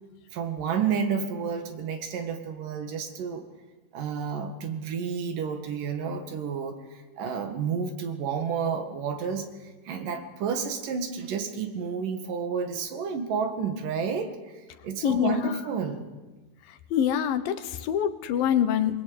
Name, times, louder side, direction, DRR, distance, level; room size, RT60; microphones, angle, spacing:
voice 1, 0.3-3.5 3.9-6.8 7.2-9.5 9.8-14.4 14.8-16.1, right 6 dB, 70° right, 7 dB, 3.4 m, -30 dB
voice 2, 15.0-15.5 16.9-19.0, left 9 dB, 80° left, 11 dB, 2.9 m, -25 dB
22.5 x 21.0 x 8.8 m, 1.2 s
omnidirectional pair, 4.0 m